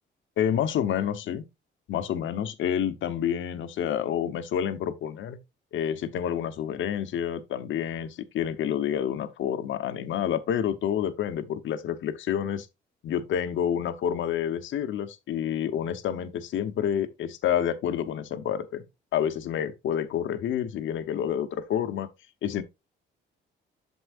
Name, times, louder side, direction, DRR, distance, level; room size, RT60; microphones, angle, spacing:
voice 1, 0.4-1.4 1.9-5.4 5.7-12.7 13.0-18.8 19.1-22.1 22.4-22.6, left 9 dB, 75° left, 1.0 m, -28 dB
8.2 x 7.2 x 2.5 m
cardioid pair, 90°, 20 cm